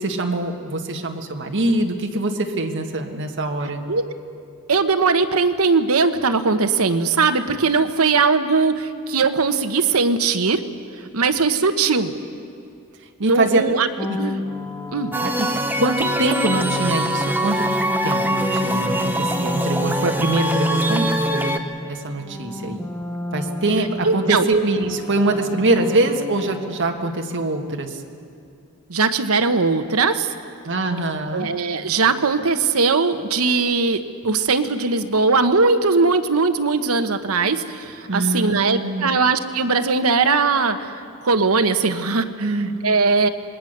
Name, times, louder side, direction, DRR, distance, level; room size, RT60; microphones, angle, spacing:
voice 1, 0.0-3.8 13.2-13.6 14.1-14.2 15.2-15.5 15.8-17.7 18.0-22.8 23.3-28.0 30.6-31.5 38.1-39.1 42.4-42.7, right 2 dB, 55° right, 3 dB, 1.8 m, -23 dB
voice 2, 4.7-10.6 11.1-12.1 13.2-13.9 14.2-14.4 14.9-15.1 24.0-24.5 28.9-30.3 31.3-40.9 41.2-42.5 42.8-43.3, right 4 dB, 75° right, 9 dB, 1.1 m, -19 dB
sound 1, 14.0-16.4 17.0-21.9 22.2-27.1, left 1 dB, 10° left, 0.7 m, -30 dB
sound 2, 15.1-21.6, right 1 dB, 10° right, 1.0 m, -23 dB
26.0 x 20.5 x 6.7 m, 2.5 s
head